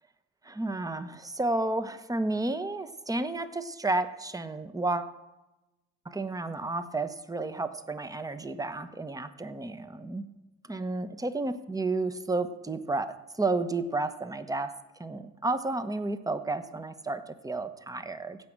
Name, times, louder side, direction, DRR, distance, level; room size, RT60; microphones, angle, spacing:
voice 1, 0.4-5.1 6.0-10.2 10.7-14.7 15.0-18.4, right 2 dB, 10° right, 11 dB, 1.0 m, -31 dB
16.0 x 6.1 x 7.5 m, 1.0 s
supercardioid pair, 70°, 35 cm